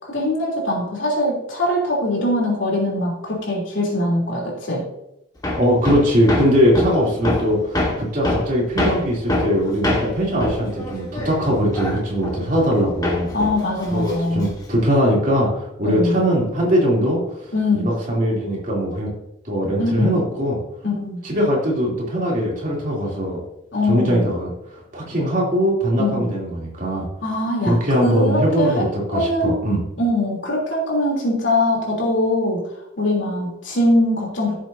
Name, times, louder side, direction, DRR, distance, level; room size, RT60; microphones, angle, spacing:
voice 1, 0.0-4.8 13.3-14.5 15.8-16.2 17.5-17.9 19.8-20.2 20.8-21.2 23.7-24.3 26.0-26.3 27.2-29.6 30.0-32.6 33.0-34.5, left 1 dB, 65° left, -2 dB, 3.2 m, -22 dB
Hammer, 5.4-12.8 13.0-14.8, left 1 dB, 20° left, 1.6 m, -25 dB
voice 2, 5.5-13.3 13.9-19.1 19.4-20.6 21.2-23.4 23.9-27.0 27.6-29.8, equal, 40° right, -4 dB, 3.0 m, -21 dB
15.0 x 7.4 x 2.7 m, 0.83 s
head